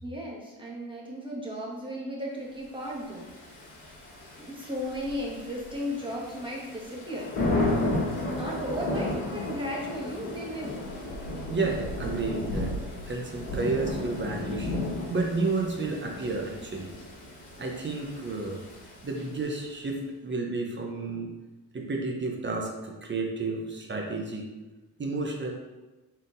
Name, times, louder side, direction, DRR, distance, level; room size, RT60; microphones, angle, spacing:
voice 1, 0.0-3.3 4.4-7.3 8.2-10.8, equal, 10° right, -3 dB, 1.3 m, -35 dB
Thunder / Rain, 3.0-19.6, left 2 dB, 60° left, 1.5 m, -34 dB
voice 2, 11.5-12.7 13.1-14.7 15.1-16.9 17.6-18.6 19.0-21.3 21.7-24.5 25.0-25.5, right 3 dB, 25° right, 1 dB, 0.7 m, -31 dB
4.2 x 3.7 x 2.6 m, 1.1 s
supercardioid pair, 70°, 42 cm